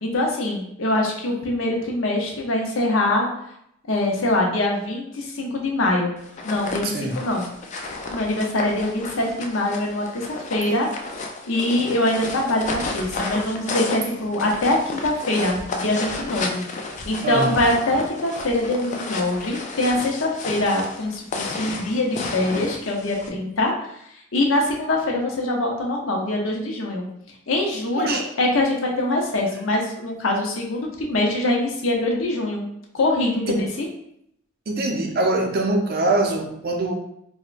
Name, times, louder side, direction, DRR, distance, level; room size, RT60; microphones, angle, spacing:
voice 1, 0.0-3.3 3.9-6.2 6.4-7.5 8.1-10.9 11.4-16.6 17.1-23.7 24.3-27.1 27.5-32.6 32.9-33.9, left 1 dB, 70° left, 0 dB, 0.7 m, -23 dB
sound 1, 6.2-23.3, left 3 dB, 35° left, 0.3 m, -32 dB
voice 2, 17.2-17.6 28.0-28.3 33.5-33.6 34.7-36.9, right 2 dB, 50° right, 2 dB, 0.5 m, -23 dB
4.2 x 2.1 x 2.4 m, 0.76 s
head